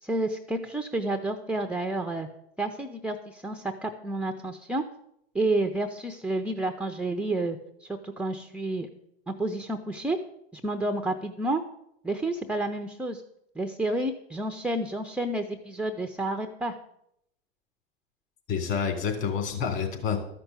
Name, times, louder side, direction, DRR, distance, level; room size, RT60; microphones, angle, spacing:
voice 1, 0.0-2.3 2.6-4.8 5.3-8.9 9.3-10.2 10.5-11.6 12.0-13.2 13.6-16.8, right 2 dB, 5° right, 5 dB, 0.5 m, -30 dB
voice 2, 18.5-20.2, left 6 dB, 40° left, 4 dB, 3.3 m, -28 dB
13.0 x 6.0 x 8.0 m, 0.78 s
hypercardioid pair, 120°, 33 cm